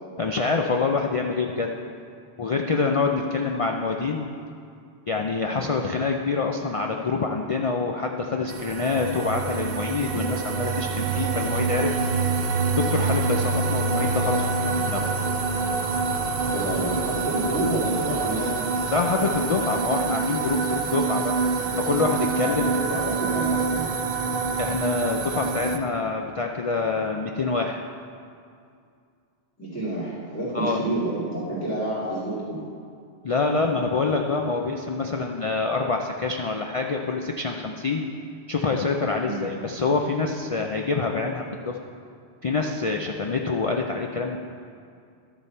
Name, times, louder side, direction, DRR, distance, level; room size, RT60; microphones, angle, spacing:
voice 1, 0.2-1.7 2.4-4.3 5.1-12.0 12.7-15.1 18.9-21.4 21.8-22.7 24.6-27.8 30.5-30.8 33.2-38.1 38.5-41.8 42.4-44.4, left 4 dB, 50° left, 2 dB, 0.4 m, -26 dB
sound 1, 8.5-25.8, right 4 dB, 60° right, 0.8 m, -26 dB
voice 2, 16.5-18.5 18.8-18.9 22.4-23.9 29.6-32.6 39.2-39.5, right 1 dB, 15° left, -10 dB, 2.2 m, -29 dB
12.0 x 6.9 x 4.4 m, 2.4 s
omnidirectional pair, 1.1 m